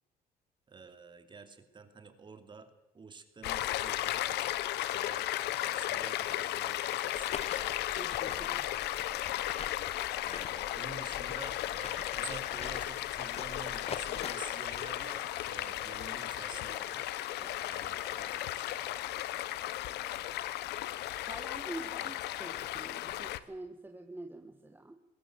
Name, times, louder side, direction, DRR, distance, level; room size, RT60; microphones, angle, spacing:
voice 1, 0.7-4.5 4.9-5.3 5.5-7.6 10.2-17.1 17.3-18.9 22.0-22.1, right 5 dB, 30° right, 8 dB, 2.7 m, -50 dB
Stream, 3.4-23.4, left 14 dB, 80° left, 1.0 m, -35 dB
sound 1, 5.7-19.5, left 2 dB, 10° left, 2.0 m, -56 dB
sound 2, 7.1-14.4, left 7 dB, 40° left, 1.0 m, -45 dB
voice 2, 8.0-8.7 21.2-25.0, right 2 dB, 10° right, 5 dB, 1.3 m, -46 dB
21.5 x 17.0 x 7.9 m, 0.99 s
cardioid pair, 110°, 17 cm